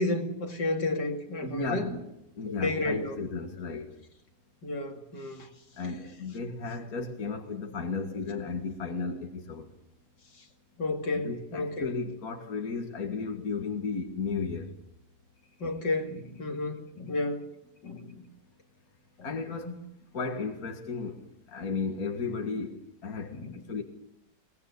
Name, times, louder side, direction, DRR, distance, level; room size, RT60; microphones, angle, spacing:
voice 1, 0.0-1.9 2.4-3.2 4.6-5.5 10.8-11.9 15.6-17.5 17.8-18.2 19.6-19.7 23.3-23.6, left 2 dB, 70° left, 4 dB, 3.1 m, -31 dB
voice 2, 1.4-2.1 2.4-4.0 5.8-9.7 11.1-14.7 19.2-19.8 20.1-23.8, left 4 dB, 55° left, 4 dB, 2.4 m, -34 dB
23.5 x 19.0 x 8.4 m, 0.79 s
omnidirectional pair, 1.9 m